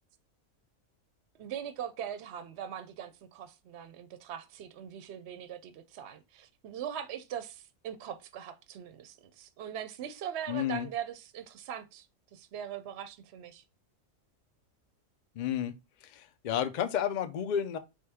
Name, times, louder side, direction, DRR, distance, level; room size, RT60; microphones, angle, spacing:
voice 1, 1.4-12.1 12.3-13.6, right 9 dB, 65° right, 0.7 m, -41 dB
voice 2, 10.5-10.9 15.4-15.7 16.0-17.8, left 9 dB, 80° left, 0.4 m, -31 dB
4.4 x 3.2 x 3.4 m
omnidirectional pair, 1.4 m